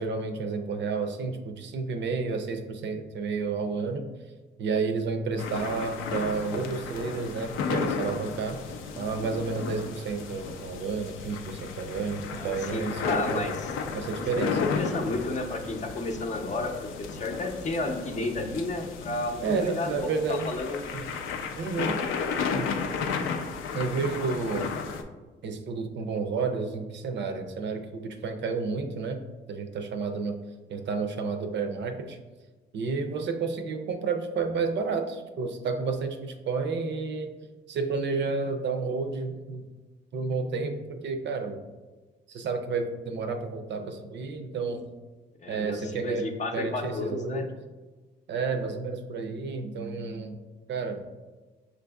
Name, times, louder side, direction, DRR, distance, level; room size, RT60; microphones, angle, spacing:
voice 1, 0.0-4.0 4.6-8.6 9.0-13.4 13.9-14.6 19.4-20.5 20.9-21.0 21.6-22.0 22.5-22.7 23.7-24.7 25.4-29.2 29.5-30.3 30.7-32.2 32.7-37.3 37.7-39.6 40.1-41.6 42.3-44.8 45.5-46.3 46.5-47.4 48.3-50.4 50.7-51.0, right 4 dB, 65° right, 6 dB, 0.5 m, -31 dB
sound 1, 5.4-25.0, left 5 dB, 85° left, 0.4 m, -34 dB
voice 2, 12.3-13.7 14.2-20.9 45.4-47.5, left 2 dB, 35° left, 4 dB, 0.6 m, -32 dB
5.9 x 2.6 x 2.3 m, 1.3 s
cardioid pair, 90°, 20 cm